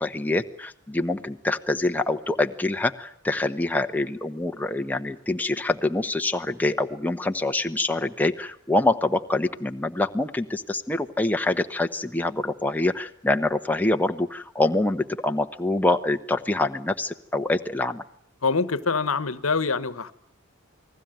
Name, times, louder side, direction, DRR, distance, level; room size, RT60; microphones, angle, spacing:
voice 1, 0.0-18.0, left 2 dB, 10° left, 5 dB, 1.1 m, -25 dB
voice 2, 18.4-20.1, left 4 dB, 80° left, 15 dB, 1.3 m, -25 dB
29.0 x 20.0 x 9.1 m, 0.64 s
head